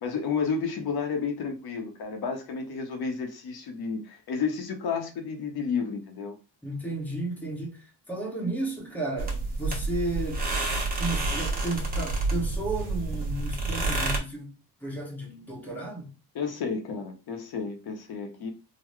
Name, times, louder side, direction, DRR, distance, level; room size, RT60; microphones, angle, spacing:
voice 1, 0.0-6.4 16.3-18.5, left 5 dB, 60° left, 0.8 m, -31 dB
voice 2, 6.6-10.5 11.0-16.1, right 2 dB, 5° left, 0.9 m, -33 dB
sound 1, 9.2-14.2, right 2 dB, 20° right, 1.0 m, -29 dB
3.8 x 2.1 x 3.1 m
cardioid pair, 130°, 43 cm